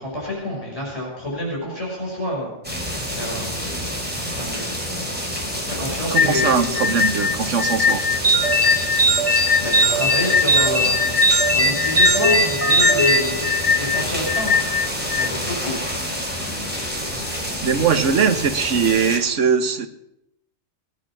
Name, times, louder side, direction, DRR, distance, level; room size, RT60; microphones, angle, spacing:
voice 1, 0.0-3.7 4.2-4.8 5.8-6.8 9.6-14.5 15.1-15.9, left 1 dB, 30° left, -4 dB, 5.9 m, -29 dB
sound 1, 2.6-19.2, equal, 10° right, 4.1 m, -28 dB
voice 2, 6.1-8.0 17.6-19.9, right 6 dB, 85° right, 9 dB, 1.5 m, -20 dB
sound 2, 6.2-15.3, left 6 dB, 55° left, 1.0 m, -22 dB
sound 3, 8.2-14.0, right 2 dB, 70° right, 2.7 m, -20 dB
18.5 x 10.0 x 6.1 m, 0.82 s
omnidirectional pair, 1.2 m